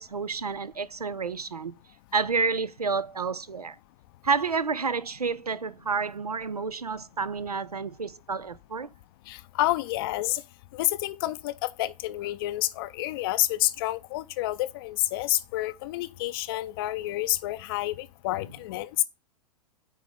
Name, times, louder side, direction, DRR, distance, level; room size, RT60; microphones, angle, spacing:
voice 1, 0.0-1.8 2.1-3.8 4.2-8.9, right 4 dB, 85° right, 0.5 m, -29 dB
voice 2, 9.3-10.4 10.7-19.0, left 17 dB, 40° left, 0.5 m, -29 dB
9.4 x 3.3 x 5.5 m
figure-of-eight pair, 105°, 19 cm